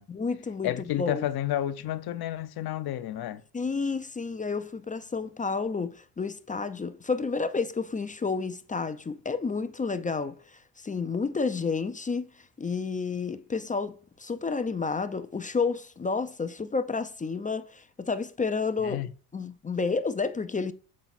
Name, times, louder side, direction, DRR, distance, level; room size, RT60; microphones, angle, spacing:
voice 1, 0.1-1.2 3.5-12.3 12.6-19.0 19.3-20.7, left 4 dB, 15° left, 0.4 m, -30 dB
voice 2, 0.6-3.4 18.8-19.1, left 12 dB, 50° left, 0.8 m, -31 dB
7.4 x 3.9 x 4.1 m
supercardioid pair, 65°, 49 cm